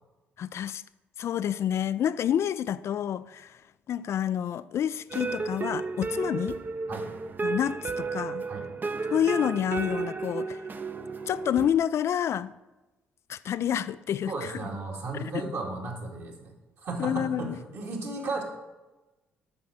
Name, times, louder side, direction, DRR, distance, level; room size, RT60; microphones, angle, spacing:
voice 1, 0.4-0.8 1.2-3.6 3.9-6.6 7.4-8.4 9.1-10.6 11.3-12.5 13.3-14.5 15.1-15.5 17.0-17.6, left 9 dB, 50° left, 0.3 m, -28 dB
sound 1, 5.1-11.7, right 4 dB, 35° right, 0.7 m, -33 dB
voice 2, 14.3-16.5 16.8-18.4, right 3 dB, 55° right, 2.3 m, -35 dB
8.5 x 6.3 x 6.1 m
figure-of-eight pair, 45°, 6 cm